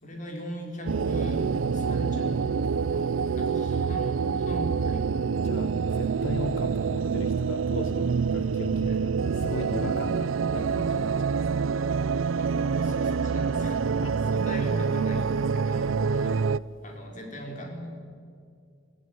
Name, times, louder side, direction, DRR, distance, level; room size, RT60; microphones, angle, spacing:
voice 1, 0.0-1.5 1.7-2.5 3.3-5.1 8.9-9.0 12.4-13.8 14.3-15.9 16.8-17.9, equal, 40° left, 1 dB, 4.5 m, -39 dB
sound 1, 0.9-16.6, right 5 dB, 90° right, 0.5 m, -26 dB
voice 2, 5.4-11.7 14.0-14.1 16.1-16.4, left 2 dB, 75° left, 8 dB, 1.0 m, -38 dB
21.0 x 16.0 x 9.5 m, 2.3 s
head